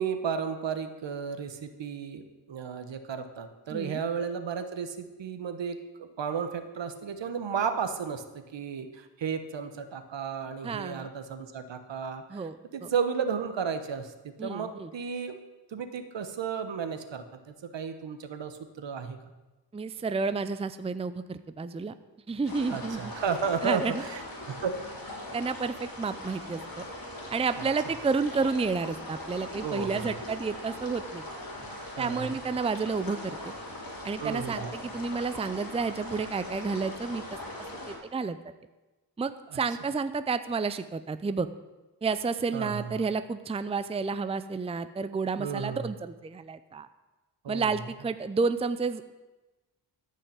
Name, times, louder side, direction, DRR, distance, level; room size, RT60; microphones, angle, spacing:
voice 1, 0.0-15.4 15.7-19.2 22.7-24.8 27.6-27.7 29.6-30.2 31.9-32.3 34.2-34.7 39.5-39.6 42.5-42.9 45.4-45.9 47.4-47.7, right 6 dB, 75° right, 9 dB, 1.3 m, -33 dB
voice 2, 3.7-4.0 10.6-11.1 12.3-12.9 14.4-14.9 19.7-21.9 22.3-23.1 23.6-24.0 25.3-26.6 27.3-31.2 32.0-33.5 34.0-37.2 37.9-38.4 39.2-41.5 42.0-46.9 47.5-49.1, right 4 dB, 15° right, 12 dB, 0.5 m, -31 dB
sound 1, 22.4-38.0, left 1 dB, 50° left, 3.5 m, -40 dB
13.5 x 5.6 x 8.8 m, 1.1 s
wide cardioid pair, 100°, 44 cm